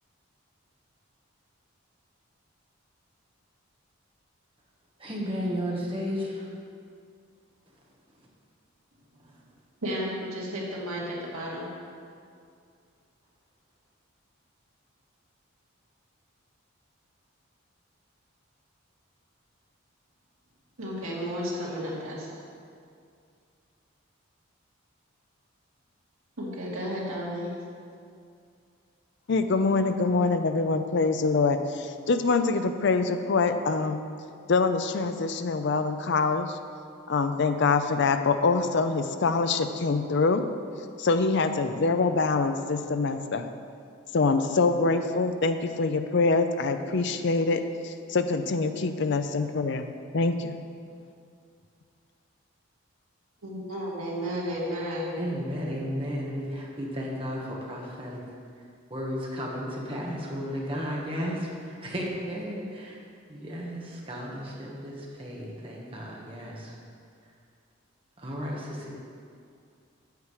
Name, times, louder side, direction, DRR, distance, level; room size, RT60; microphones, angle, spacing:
voice 1, 5.0-6.5 55.2-58.2 58.9-63.0 63.3-66.8 68.2-68.9, equal, 25° right, -3 dB, 1.4 m, -33 dB
voice 2, 9.8-11.7 20.8-22.3 26.4-27.6 53.4-55.1, equal, 85° right, -5 dB, 2.1 m, -33 dB
voice 3, 29.3-34.1 34.5-36.6 37.1-40.4 41.0-43.5 44.1-49.9 50.1-50.6, left 4 dB, 55° left, 8 dB, 0.5 m, -25 dB
8.2 x 6.9 x 4.9 m, 2.3 s
head